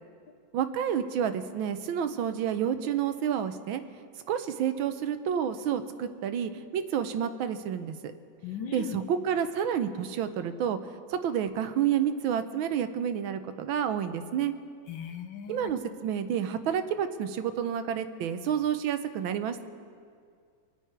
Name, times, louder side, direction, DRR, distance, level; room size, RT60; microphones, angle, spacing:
voice 1, 0.5-3.8 4.3-8.0 8.7-10.8 11.1-14.5 15.5-19.6, right 8 dB, 90° right, 10 dB, 1.6 m, -29 dB
voice 2, 8.4-9.0 14.9-15.8, left 8 dB, 75° left, 7 dB, 1.6 m, -38 dB
26.0 x 9.1 x 4.7 m, 2.2 s
omnidirectional pair, 2.1 m